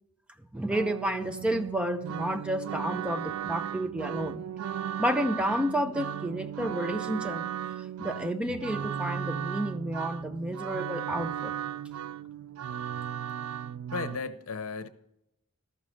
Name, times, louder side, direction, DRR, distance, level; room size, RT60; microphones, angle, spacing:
voice 1, 0.5-4.4 5.0-7.5 8.0-11.5, equal, 5° right, 9 dB, 0.3 m, -31 dB
sound 1, 0.7-14.2, right 9 dB, 80° right, 0.3 m, -36 dB
voice 2, 13.9-14.9, left 4 dB, 75° left, 11 dB, 0.7 m, -35 dB
13.5 x 6.3 x 6.2 m, 0.83 s
head